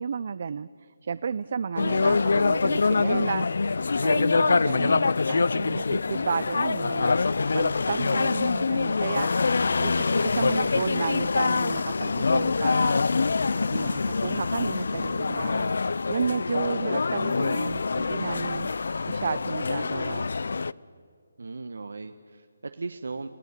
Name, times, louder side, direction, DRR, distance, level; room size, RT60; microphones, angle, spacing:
voice 1, 0.0-13.0 13.7-18.7 19.1-20.2, right 6 dB, 45° right, 15 dB, 0.5 m, -33 dB
sound 1, 1.8-20.7, left 4 dB, 65° left, 0.5 m, -25 dB
voice 2, 21.4-23.3, right 3 dB, 75° right, 8 dB, 1.0 m, -37 dB
29.0 x 16.0 x 6.7 m, 2.3 s
hypercardioid pair, 170°, 0 cm